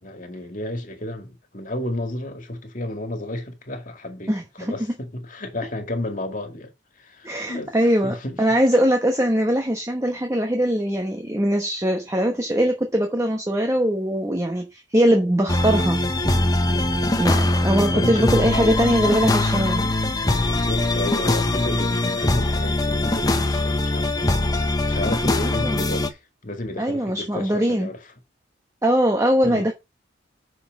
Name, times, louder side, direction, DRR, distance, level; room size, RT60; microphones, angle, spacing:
voice 1, 0.0-4.3 4.6-8.4 16.6-17.0 17.9-19.0 20.4-24.4 24.7-28.0 29.4-29.7, left 1 dB, 45° left, 2.1 m, -32 dB
voice 2, 4.3-4.7 7.2-16.0 17.2-19.9 25.4-25.8 26.8-27.9 28.8-29.7, equal, 15° right, 1.0 m, -21 dB
sound 1, 15.5-26.1, left 2 dB, 20° left, 0.9 m, -22 dB
6.4 x 5.8 x 5.3 m
head